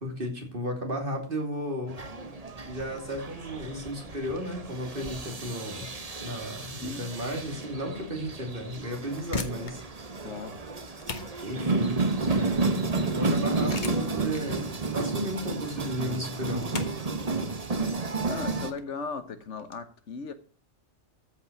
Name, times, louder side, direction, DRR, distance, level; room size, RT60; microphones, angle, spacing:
voice 1, 0.0-2.0 2.7-5.9 6.2-9.8 11.4-12.0 12.3-14.7 14.9-16.6, equal, 50° right, 3.0 m, -34 dB
sound 1, 1.9-18.7, right 3 dB, 35° right, 1.2 m, -31 dB
voice 2, 6.7-7.1 10.2-10.6 18.2-20.3, left 4 dB, 85° left, 1.5 m, -37 dB
sound 2, 9.2-19.8, left 4 dB, 40° left, 1.5 m, -41 dB
14.0 x 5.6 x 6.2 m
omnidirectional pair, 1.2 m